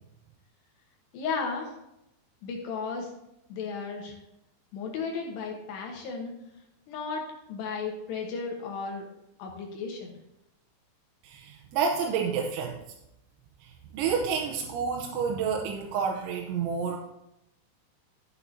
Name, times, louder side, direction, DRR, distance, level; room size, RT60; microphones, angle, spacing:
voice 1, 1.1-1.7 2.4-3.1 3.5-4.1 4.7-6.3 6.9-9.1 9.4-10.1, left 5 dB, 70° left, 1 dB, 3.1 m, -34 dB
voice 2, 11.2-12.8 13.9-17.0, right 6 dB, 85° right, 1 dB, 3.2 m, -29 dB
13.0 x 8.4 x 2.8 m, 0.86 s
omnidirectional pair, 5.4 m